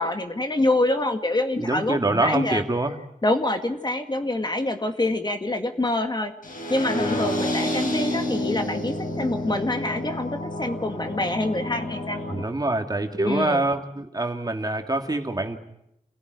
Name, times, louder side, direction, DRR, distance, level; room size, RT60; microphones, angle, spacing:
voice 1, 0.0-2.6 3.2-6.3 6.7-12.2 13.2-13.6, left 2 dB, 30° left, 6 dB, 2.1 m, -26 dB
voice 2, 1.6-2.9 12.3-15.6, right 2 dB, 25° right, 5 dB, 2.4 m, -25 dB
sound 1, 6.4-12.4, left 1 dB, 80° left, 5.1 m, -29 dB
28.0 x 16.5 x 9.5 m, 0.82 s
wide cardioid pair, 70°, 14 cm